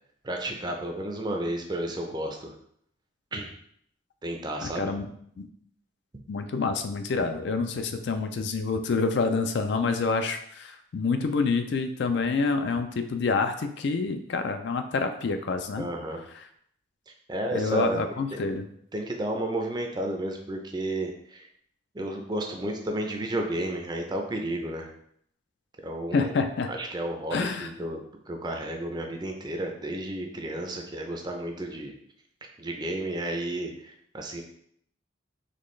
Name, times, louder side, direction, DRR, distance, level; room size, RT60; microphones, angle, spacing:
voice 1, 0.2-2.5 3.3-3.5 4.2-4.9 15.8-16.2 17.3-18.0 18.9-21.5 21.9-24.9 25.8-26.4 26.7-28.0 28.3-31.9 32.6-34.4, right 1 dB, 20° right, 3 dB, 0.5 m, -32 dB
voice 2, 4.6-5.1 5.4-5.5 6.3-15.9 17.5-18.7 26.1-26.7 27.3-27.7, left 4 dB, 60° left, 7 dB, 0.4 m, -27 dB
4.3 x 3.1 x 3.1 m, 0.69 s
head